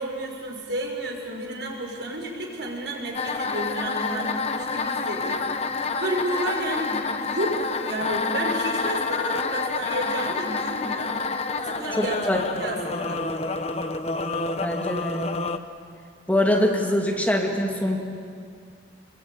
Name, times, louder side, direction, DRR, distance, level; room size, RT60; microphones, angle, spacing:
voice 1, 0.0-5.6 6.0-7.0 7.3-11.2 11.6-13.2, right 1 dB, 75° right, 0 dB, 6.1 m, -31 dB
sound 1, 3.1-15.6, left 4 dB, 35° left, 1.1 m, -28 dB
voice 2, 12.0-12.4 14.6-15.4 16.3-18.0, left 1 dB, 10° left, 0 dB, 2.4 m, -23 dB
30.0 x 22.0 x 8.7 m, 2.2 s
head